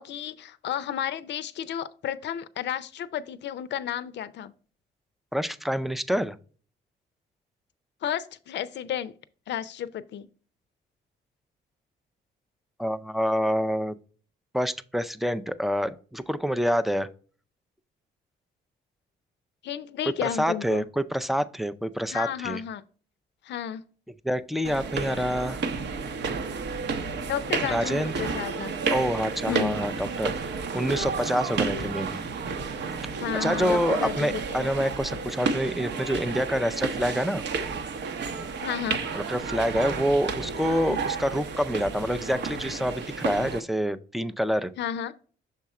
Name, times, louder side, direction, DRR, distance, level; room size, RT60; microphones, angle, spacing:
voice 1, 0.0-4.5 8.0-9.2 9.5-10.3 19.6-20.9 22.1-22.8 23.4-23.8 27.3-28.9 29.5-29.8 33.2-34.7 38.6-39.1 40.9-41.0 44.8-45.1, left 10 dB, 60° left, 0.5 m, -32 dB
voice 2, 5.3-6.4 12.8-13.9 14.5-17.1 20.2-22.6 24.2-25.6 27.7-28.3 28.9-32.2 33.4-37.4 39.1-44.7, equal, ahead, 0.4 m, -27 dB
sound 1, 24.6-43.6, right 4 dB, 65° right, 0.8 m, -31 dB
6.6 x 3.6 x 4.2 m
cardioid pair, 90°, 20 cm